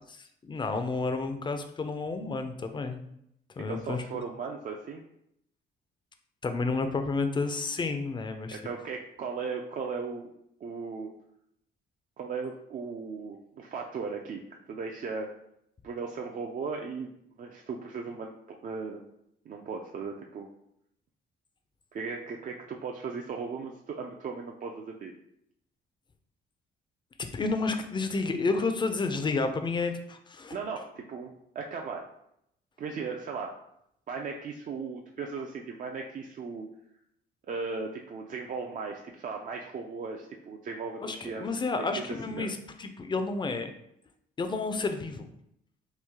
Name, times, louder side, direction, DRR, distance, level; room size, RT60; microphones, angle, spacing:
voice 1, 0.4-3.0 3.6-4.0 6.4-8.6 27.2-30.6 41.0-43.7 44.4-45.3, left 3 dB, 25° left, 7 dB, 0.4 m, -30 dB
voice 2, 3.7-5.0 8.5-10.3 10.6-11.1 12.2-14.4 14.7-15.3 15.8-17.1 17.4-19.0 19.5-20.5 21.9-25.1 30.5-32.1 32.8-33.5 34.1-36.7 37.5-41.4 41.7-41.9 42.3-42.5, right 5 dB, 40° right, 1 dB, 0.4 m, -37 dB
3.1 x 2.3 x 3.5 m, 0.75 s
cardioid pair, 90°, 20 cm